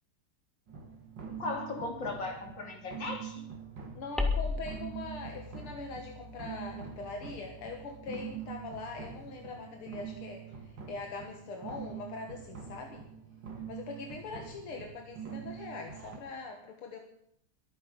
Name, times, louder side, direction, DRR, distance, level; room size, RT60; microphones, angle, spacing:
sound 1, 0.7-16.2, right 7 dB, 55° right, 2.6 m, -45 dB
voice 1, 1.3-3.4, left 3 dB, 55° left, 2 dB, 3.6 m, -37 dB
voice 2, 3.9-13.0 13.7-17.0, left 4 dB, 80° left, 3 dB, 2.5 m, -42 dB
sound 2, 4.2-9.0, left 3 dB, ahead, 1.4 m, -38 dB
23.0 x 9.5 x 5.3 m, 0.69 s
omnidirectional pair, 2.4 m